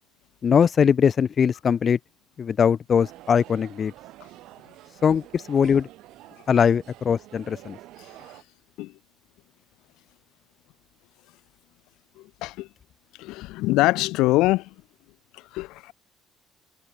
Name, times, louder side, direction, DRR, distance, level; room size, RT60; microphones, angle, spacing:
voice 1, 0.4-2.0 2.4-3.9 5.0-5.9 6.5-7.8, left 7 dB, 40° left, 0.4 m, -21 dB
sound 1, 3.0-8.4, right 16 dB, 80° right, 7.3 m, -48 dB
voice 2, 13.2-14.7 15.3-15.9, left 19 dB, 85° left, 1.1 m, -23 dB
cardioid pair, 115°, 0 cm